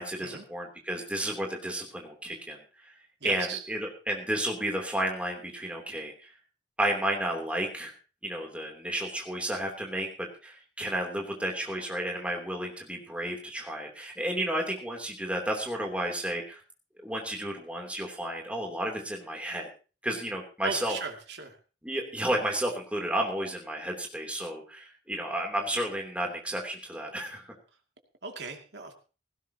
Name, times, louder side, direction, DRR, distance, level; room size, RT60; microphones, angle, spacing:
voice 1, 0.0-2.6 2.8-2.9 3.2-6.3 6.8-7.9 8.2-16.6 17.0-19.7 20.0-20.9 21.8-27.5, right 1 dB, 5° right, 0 dB, 3.1 m, -32 dB
voice 2, 3.2-3.6 20.6-21.6 28.2-28.9, right 5 dB, 75° right, 4 dB, 2.4 m, -37 dB
17.0 x 16.0 x 2.9 m, 0.34 s
head